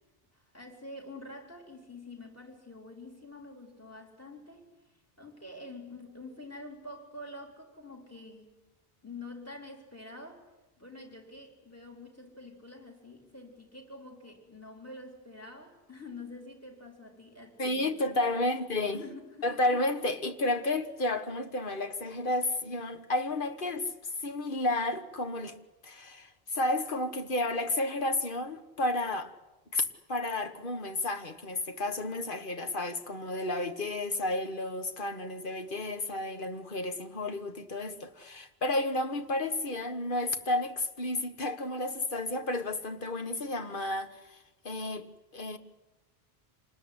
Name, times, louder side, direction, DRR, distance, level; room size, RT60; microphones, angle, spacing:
voice 1, 0.3-4.7 5.2-8.5 9.0-10.4 10.8-18.4 18.9-19.5, left 2 dB, 15° left, 4.3 m, -47 dB
voice 2, 17.6-19.0 19.4-25.6 25.8-29.3 29.7-45.1 45.3-45.6, left 2 dB, 55° left, 1.6 m, -32 dB
27.0 x 20.0 x 9.8 m
omnidirectional pair, 1.0 m